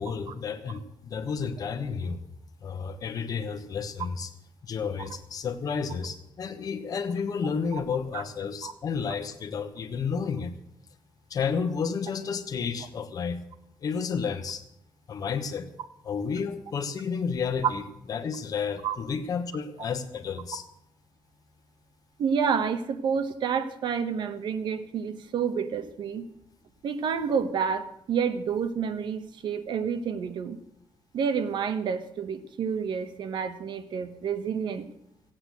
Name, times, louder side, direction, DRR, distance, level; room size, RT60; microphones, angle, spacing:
voice 1, 0.0-2.2 2.6-4.3 4.6-10.5 11.3-13.4 13.8-14.6 15.1-15.7 16.0-17.8 18.1-20.6, left 6 dB, 45° left, 8 dB, 1.2 m, -31 dB
voice 2, 22.2-26.3 26.8-30.6 31.1-34.9, right 6 dB, 60° right, 10 dB, 1.1 m, -29 dB
15.5 x 8.9 x 7.8 m, 0.77 s
wide cardioid pair, 175°, 9 cm